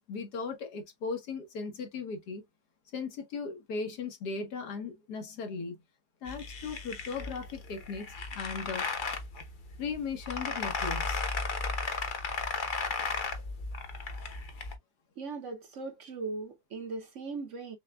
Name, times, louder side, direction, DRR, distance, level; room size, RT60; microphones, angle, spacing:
voice 1, 0.0-2.4 2.9-5.8 6.2-8.8 9.8-11.2, left 5 dB, 85° left, 1.7 m, -37 dB
sound 1, 6.3-14.8, left 4 dB, 45° left, 0.7 m, -35 dB
voice 2, 15.2-17.8, right 3 dB, 55° right, 1.0 m, -39 dB
6.5 x 2.2 x 2.2 m
omnidirectional pair, 1.7 m